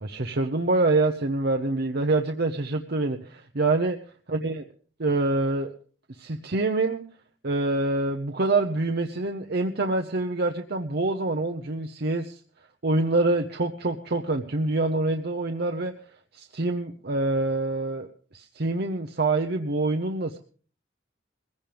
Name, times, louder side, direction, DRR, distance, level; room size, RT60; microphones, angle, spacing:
voice 1, 0.0-4.0 4.3-4.7 5.0-5.7 6.2-7.0 7.4-12.3 12.8-15.9 16.3-18.1 18.3-20.4, right 2 dB, 60° right, 4 dB, 0.9 m, -26 dB
20.5 x 16.0 x 3.5 m, 0.41 s
head